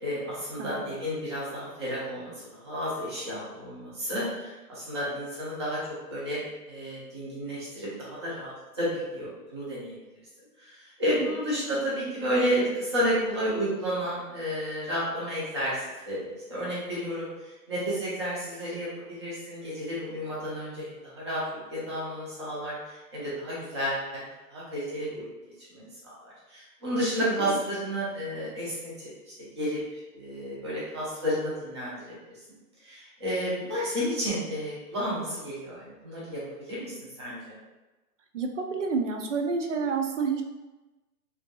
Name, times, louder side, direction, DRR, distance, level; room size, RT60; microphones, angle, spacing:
voice 1, 0.0-2.3 2.6-5.8 6.1-6.4 6.7-8.5 8.8-10.0 10.6-21.4 21.7-24.2 24.5-25.3 25.7-28.9 29.6-29.8 30.1-32.2 32.8-36.9 37.2-37.5, equal, 15° right, -8 dB, 0.7 m, -31 dB
voice 2, 0.6-1.0 11.2-11.3 27.2-27.6 38.3-40.4, right 5 dB, 50° right, 4 dB, 0.6 m, -29 dB
5.7 x 2.8 x 2.3 m, 1.1 s
hypercardioid pair, 175°, 47 cm